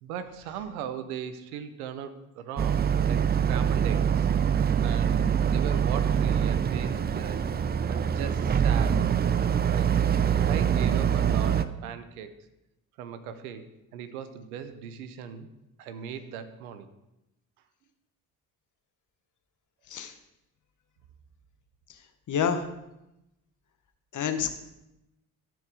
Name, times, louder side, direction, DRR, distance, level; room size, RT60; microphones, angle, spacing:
voice 1, 0.0-4.3 4.8-7.4 7.9-9.0 9.6-9.9 10.4-12.3 13.0-15.5 15.8-16.9, right 8 dB, 80° right, 11 dB, 0.8 m, -39 dB
Boat Water vehicle, 2.6-11.6, right 8 dB, 25° right, 0.4 m, -24 dB
voice 2, 22.3-22.6 24.1-24.6, left 7 dB, 45° left, 7 dB, 1.1 m, -28 dB
13.5 x 4.7 x 4.8 m, 0.92 s
hypercardioid pair, 50°, 43 cm